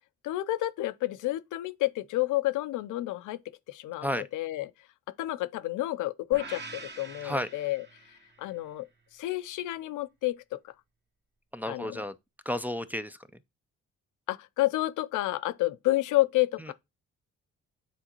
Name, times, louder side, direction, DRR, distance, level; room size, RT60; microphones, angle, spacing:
voice 1, 0.2-3.4 3.7-4.7 5.2-7.9 8.4-8.9 9.1-10.6 11.7-12.0 14.3-16.7, left 17 dB, 85° left, 0.5 m, -30 dB
sound 1, 6.3-8.5, right 3 dB, 35° right, 1.3 m, -45 dB
voice 2, 11.5-12.1 12.5-13.2, left 1 dB, 5° right, 0.4 m, -32 dB
9.1 x 3.8 x 2.9 m
cardioid pair, 90°, 30 cm